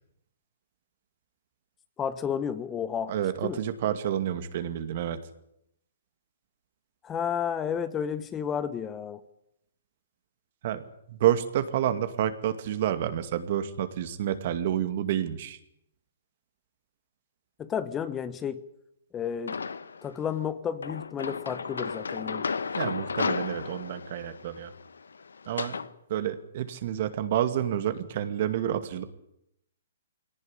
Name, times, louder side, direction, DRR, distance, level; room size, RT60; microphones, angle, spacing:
voice 1, 2.0-3.1 3.4-3.6 7.0-9.2 17.6-18.6 19.1-19.6 20.0-22.5, left 8 dB, 15° left, 13 dB, 1.2 m, -31 dB
voice 2, 3.1-5.2 10.6-10.8 11.1-15.6 22.8-24.7 25.5-25.7 26.1-29.0, right 11 dB, 50° right, 10 dB, 2.3 m, -29 dB
sound 1, 19.5-20.1 20.8-25.9, left 5 dB, 90° left, 1.2 m, -34 dB
22.5 x 18.0 x 10.0 m, 0.78 s
hypercardioid pair, 140°, 0 cm